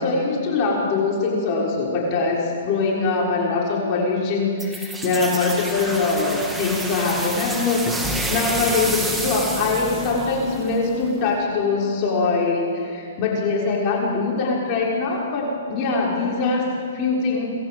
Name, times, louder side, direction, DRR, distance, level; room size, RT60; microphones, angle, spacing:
voice 1, 0.0-17.5, left 3 dB, 35° left, -3 dB, 6.2 m, -23 dB
sound 1, 4.6-11.2, right 2 dB, 5° right, 2.8 m, -29 dB
28.0 x 21.0 x 8.0 m, 2.4 s
hypercardioid pair, 145°, 0 cm